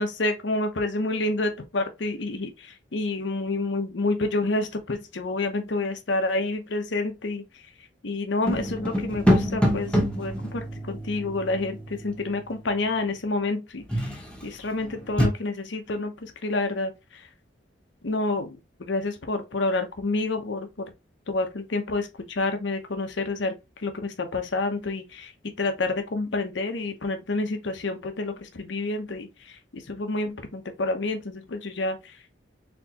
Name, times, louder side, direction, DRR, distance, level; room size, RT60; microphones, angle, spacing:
voice 1, 0.0-7.4 8.0-17.3 18.0-20.9 21.3-25.3 25.6-32.2, left 2 dB, 75° left, 0.8 m, -29 dB
sound 1, 8.4-12.2 13.9-14.5 14.8-15.3, equal, 5° left, 0.9 m, -26 dB
4.4 x 3.3 x 2.8 m
head